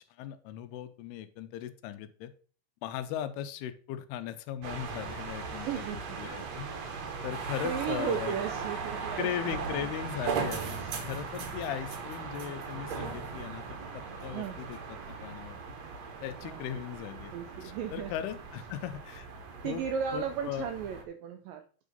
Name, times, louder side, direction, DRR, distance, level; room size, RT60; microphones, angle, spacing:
voice 1, 0.1-2.3 2.8-6.7 7.2-8.4 9.2-10.8 11.1-15.6 16.2-17.3 17.6-19.3 19.6-19.8 20.1-20.7, left 11 dB, 85° left, 10 dB, 2.6 m, -38 dB
sound 1, 4.6-21.0, right 5 dB, 65° right, 1.7 m, -38 dB
voice 2, 5.6-6.2 7.1-7.3 7.6-9.7 10.6-11.0 14.3-14.6 16.4-16.6 17.3-18.1 19.6-21.6, right 8 dB, 85° right, 7 dB, 2.0 m, -35 dB
9.2 x 3.6 x 5.3 m, 0.42 s
omnidirectional pair, 4.6 m